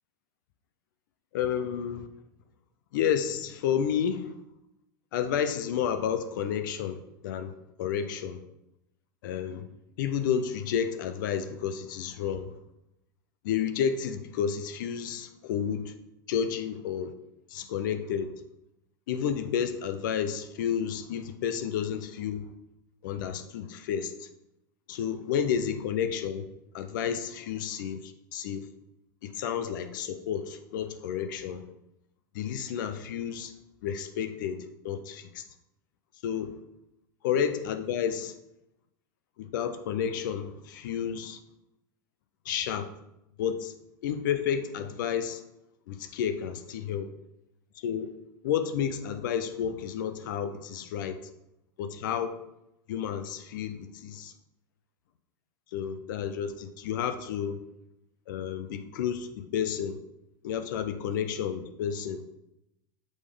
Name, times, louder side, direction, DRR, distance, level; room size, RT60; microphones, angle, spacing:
voice 1, 1.3-2.1 2.9-4.3 5.1-7.5 7.8-8.4 9.2-9.7 10.0-12.5 13.4-15.9 16.3-17.1 17.5-18.3 19.1-22.5 23.0-24.3 24.9-26.4 26.7-28.7 29.2-31.7 32.3-33.5 33.8-35.4 36.2-36.6 37.2-38.3 39.4-41.4 42.5-42.9 43.4-43.7 44.0-45.4 45.9-47.1 47.8-48.1 48.4-51.2 51.8-52.4 52.9-54.3 55.7-57.6 58.3-60.0 60.4-62.2, left 8 dB, 70° left, 10 dB, 0.6 m, -31 dB
6.3 x 5.0 x 3.7 m, 0.86 s
hypercardioid pair, 105°, 11 cm